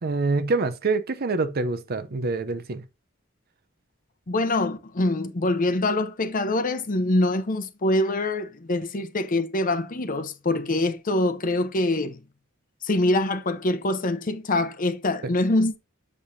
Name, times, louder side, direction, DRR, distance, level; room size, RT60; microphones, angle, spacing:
voice 1, 0.0-2.8, right 3 dB, 50° right, 0.6 m, -26 dB
voice 2, 4.3-12.2 12.8-15.8, left 2 dB, 45° left, 0.8 m, -24 dB
7.3 x 6.6 x 2.6 m
head